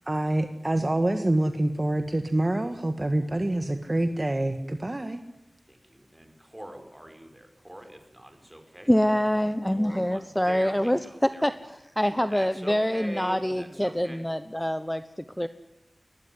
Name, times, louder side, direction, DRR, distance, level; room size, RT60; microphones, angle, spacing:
voice 1, 0.1-5.2, right 1 dB, 30° right, 7 dB, 1.7 m, -26 dB
voice 2, 5.7-8.9 9.8-11.7 12.3-14.2, right 1 dB, 15° right, 5 dB, 5.7 m, -44 dB
voice 3, 8.9-11.5 12.0-15.5, equal, 10° left, 11 dB, 1.0 m, -25 dB
22.5 x 20.5 x 9.7 m, 0.88 s
wide cardioid pair, 70°, 0 cm